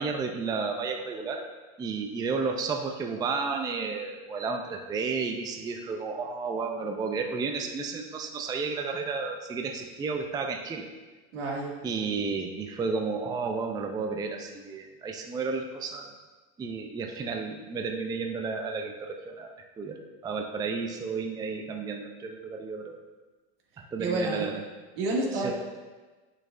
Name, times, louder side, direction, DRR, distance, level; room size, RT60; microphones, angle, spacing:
voice 1, 0.0-1.4 1.8-10.9 11.8-16.1 16.6-23.0 23.8-24.6 25.3-25.5, right 4 dB, 15° right, 3 dB, 0.4 m, -32 dB
voice 2, 11.3-11.7 24.0-24.5 25.0-25.5, right 2 dB, 80° right, -2 dB, 2.0 m, -29 dB
8.4 x 6.4 x 2.5 m, 1.2 s
supercardioid pair, 125°, 30 cm